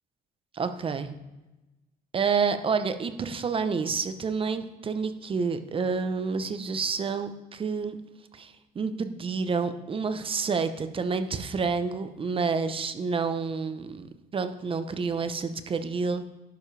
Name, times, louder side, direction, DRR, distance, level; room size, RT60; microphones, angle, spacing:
voice 1, 0.5-1.1 2.1-8.0 8.3-16.2, right 5 dB, 30° right, 10 dB, 0.7 m, -29 dB
11.5 x 7.2 x 3.3 m, 1.0 s
cardioid pair, 110°, 17 cm